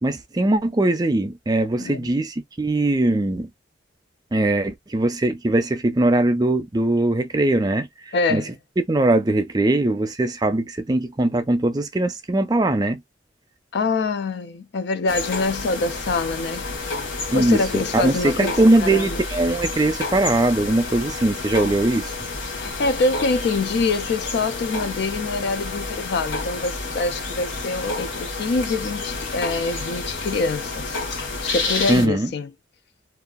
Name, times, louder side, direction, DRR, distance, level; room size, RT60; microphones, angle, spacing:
voice 1, 0.0-3.5 4.3-8.4 8.9-13.0 17.3-22.1 31.9-32.3, right 2 dB, 20° right, 0.4 m, -21 dB
voice 2, 8.1-8.5 13.7-16.6 17.3-19.2 22.6-31.0 31.4-32.5, left 3 dB, 60° left, 0.4 m, -25 dB
sound 1, 15.1-32.1, left 3 dB, 80° left, 1.0 m, -30 dB
2.6 x 2.3 x 2.2 m
head